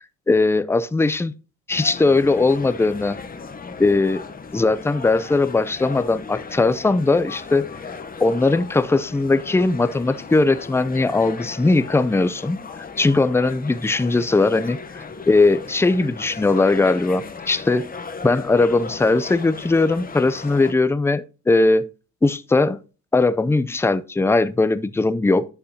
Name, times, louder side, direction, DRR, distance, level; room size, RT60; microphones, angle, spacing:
voice 1, 0.3-1.3 1.7-3.2 3.8-4.2 4.5-7.6 8.2-12.6 13.0-17.9 18.2-21.9 22.2-22.8 23.1-25.5, left 3 dB, 10° left, 0.5 m, -19 dB
sound 1, 1.7-20.7, left 5 dB, 30° left, 1.0 m, -37 dB
9.5 x 6.5 x 2.8 m
cardioid pair, 90°, 30 cm